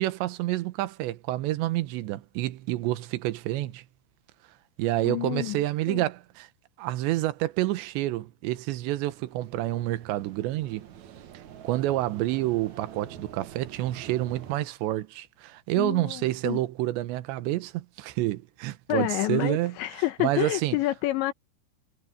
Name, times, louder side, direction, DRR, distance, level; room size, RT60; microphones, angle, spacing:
voice 1, 0.0-3.8 4.8-6.5 6.8-10.9 11.6-19.8 20.2-20.8, right 16 dB, 80° right, 3.3 m, -28 dB
voice 2, 5.0-6.1 15.8-16.6 18.9-21.3, left 17 dB, 80° left, 3.3 m, -29 dB
sound 1, 8.9-14.6, right 9 dB, 60° right, 2.1 m, -46 dB
omnidirectional pair, 5.2 m